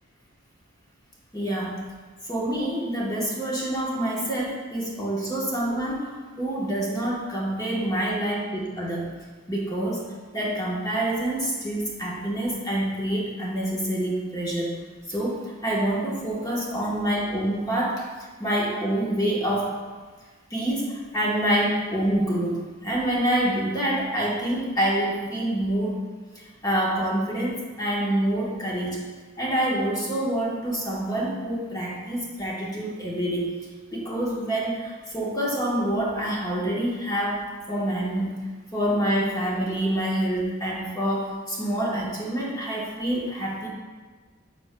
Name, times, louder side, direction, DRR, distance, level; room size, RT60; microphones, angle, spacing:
voice 1, 1.3-1.9 2.3-9.1 9.5-10.1 10.3-14.7 15.1-18.0 18.4-19.7 20.5-26.1 26.3-29.0 29.4-33.5 33.9-37.4 37.7-38.4 38.7-43.7, right 1 dB, 20° left, -5 dB, 1.1 m, -26 dB
9.7 x 6.0 x 2.2 m, 1.4 s
head